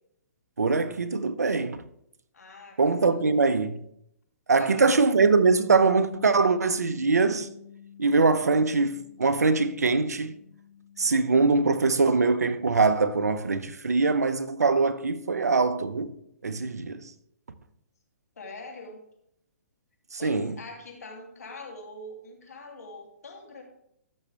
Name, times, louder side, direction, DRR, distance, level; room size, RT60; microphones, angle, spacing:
voice 1, 0.6-1.8 2.8-3.8 4.5-7.5 8.0-10.3 11.0-16.1 16.4-17.1 20.1-20.5, right 4 dB, 90° right, 0.8 m, -23 dB
voice 2, 2.3-3.5 4.6-5.1 18.4-19.0 20.2-23.6, left 2 dB, 80° left, 2.8 m, -43 dB
Bass guitar, 5.2-11.5, left 8 dB, 5° left, 2.1 m, -46 dB
13.5 x 6.4 x 3.4 m
hypercardioid pair, 135°, 8 cm